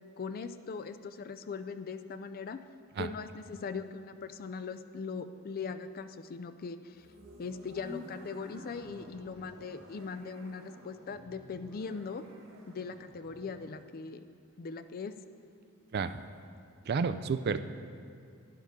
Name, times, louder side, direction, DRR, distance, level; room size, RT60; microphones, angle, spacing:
voice 1, 0.2-2.6 3.0-7.1 7.4-12.2 12.7-14.3 14.6-15.1, left 5 dB, 45° left, 11 dB, 0.4 m, -40 dB
sound 1, 6.9-13.8, equal, 65° right, 1.7 m, -51 dB
voice 2, 16.9-17.6, right 5 dB, 50° right, 11 dB, 0.4 m, -30 dB
11.5 x 10.5 x 3.6 m, 2.3 s
head